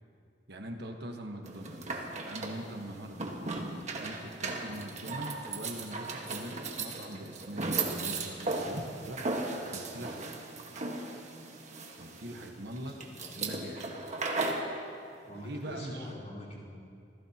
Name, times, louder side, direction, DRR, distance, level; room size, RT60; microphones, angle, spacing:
voice 1, 0.5-3.3 4.0-9.2 9.7-10.3 12.0-13.0 13.3-14.1 15.3-16.1, right 1 dB, 65° right, 3 dB, 1.3 m, -43 dB
sound 1, 1.5-14.7, right 3 dB, 40° right, 1.5 m, -36 dB
voice 2, 15.1-16.7, equal, 45° left, -7 dB, 4.2 m, -44 dB
27.0 x 16.0 x 2.9 m, 2.4 s
head